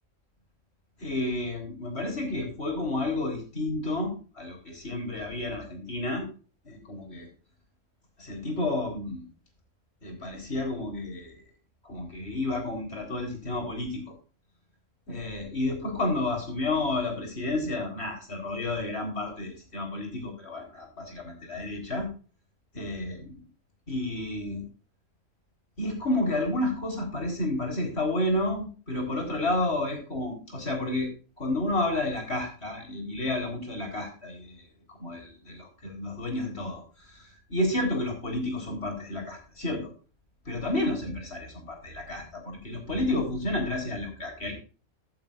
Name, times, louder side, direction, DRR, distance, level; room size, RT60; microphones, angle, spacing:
voice 1, 1.0-6.3 6.6-7.3 8.2-9.2 10.0-11.4 11.8-14.0 15.1-22.1 22.7-23.4 23.9-24.6 25.8-31.1 31.4-39.9 40.4-44.5, left 2 dB, 50° left, 2 dB, 4.4 m, -31 dB
15.5 x 8.7 x 2.5 m, 0.36 s
omnidirectional pair, 1.4 m